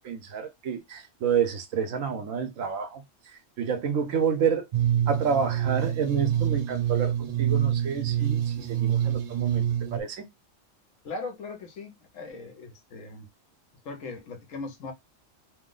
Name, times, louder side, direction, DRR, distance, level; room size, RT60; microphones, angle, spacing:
voice 1, 0.0-3.0 3.6-4.7 5.1-9.6 9.9-10.3, right 7 dB, 85° right, 1.1 m, -29 dB
sound 1, 4.7-10.0, right 10 dB, 60° right, 0.5 m, -26 dB
voice 2, 11.0-13.3 13.8-14.9, left 3 dB, 80° left, 1.3 m, -39 dB
3.0 x 2.1 x 3.7 m
omnidirectional pair, 1.3 m